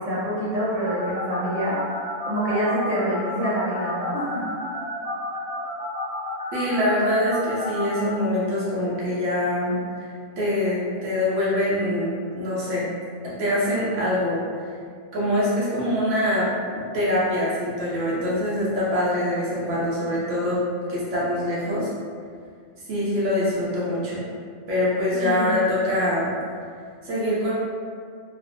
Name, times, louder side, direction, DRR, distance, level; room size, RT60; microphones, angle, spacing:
voice 1, 0.0-1.8 2.2-4.5 25.1-25.5, equal, 45° right, -9 dB, 0.9 m, -26 dB
sound 1, 0.8-8.0, left 1 dB, 5° right, 0.8 m, -31 dB
voice 2, 6.5-10.1 10.4-12.9 13.2-14.6 15.1-20.6 20.9-21.9 22.9-24.3 24.7-26.3 27.0-27.5, left 1 dB, 80° right, -7 dB, 1.0 m, -24 dB
3.2 x 2.1 x 2.4 m, 2.1 s
omnidirectional pair, 1.3 m